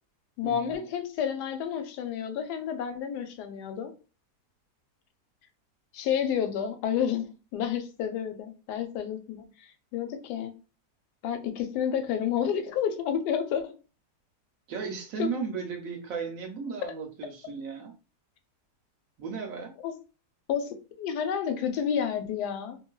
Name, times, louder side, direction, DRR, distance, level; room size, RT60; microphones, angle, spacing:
voice 1, 0.4-3.9 5.9-7.3 7.5-10.5 11.2-13.7 15.2-15.3 19.8-19.9 20.5-22.8, left 8 dB, 85° left, 1.1 m, -30 dB
voice 2, 14.7-17.9 19.2-19.7, right 5 dB, 70° right, 0.9 m, -35 dB
3.1 x 2.5 x 2.2 m
omnidirectional pair, 1.7 m